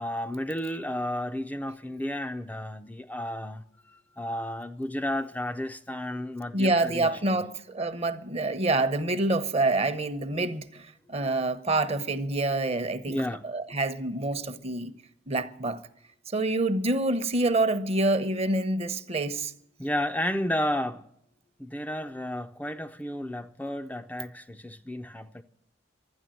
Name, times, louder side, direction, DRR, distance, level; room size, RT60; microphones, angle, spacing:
voice 1, 0.0-7.5 10.3-10.4 13.1-13.4 19.8-21.0 21.6-25.4, left 1 dB, 10° left, 0.5 m, -32 dB
voice 2, 6.5-14.9 15.3-15.8 16.3-19.5, right 2 dB, 35° right, 0.8 m, -27 dB
12.5 x 10.0 x 8.9 m
head